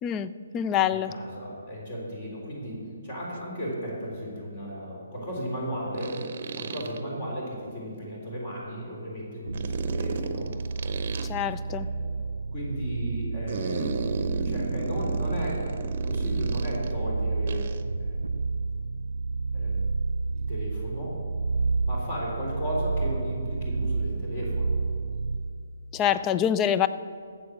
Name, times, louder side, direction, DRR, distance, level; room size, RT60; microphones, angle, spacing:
voice 1, 0.0-1.1 11.3-11.9 25.9-26.9, left 9 dB, 20° left, 13 dB, 0.4 m, -25 dB
voice 2, 0.9-6.2 6.6-10.5 11.7-12.2 12.5-14.0 14.4-15.6 16.0-17.7 18.0-18.2 19.5-19.9 20.5-21.2 21.8-24.8, equal, 35° left, -3 dB, 3.8 m, -35 dB
sound 1, 3.4-3.5 5.9-7.0 9.5-11.3 13.5-16.9 17.5-17.8, right 4 dB, 45° right, 0.8 m, -35 dB
sound 2, 9.5-25.6, right 4 dB, 70° right, 0.5 m, -30 dB
14.0 x 7.9 x 6.2 m, 2.4 s
figure-of-eight pair, 135°, 0 cm